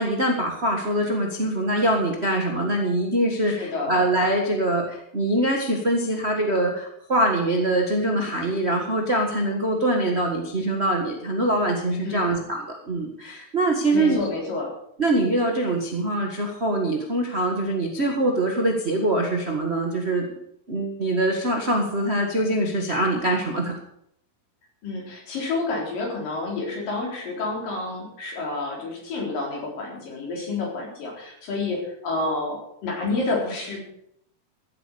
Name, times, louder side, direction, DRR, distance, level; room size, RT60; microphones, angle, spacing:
voice 1, 0.0-14.3 15.0-20.3 20.7-23.7, right 1 dB, 50° right, 1 dB, 0.7 m, -23 dB
voice 2, 3.4-3.9 12.1-12.5 13.9-14.7 24.8-33.8, left 3 dB, 65° left, -1 dB, 5.6 m, -29 dB
14.5 x 8.6 x 6.9 m, 0.74 s
omnidirectional pair, 4.3 m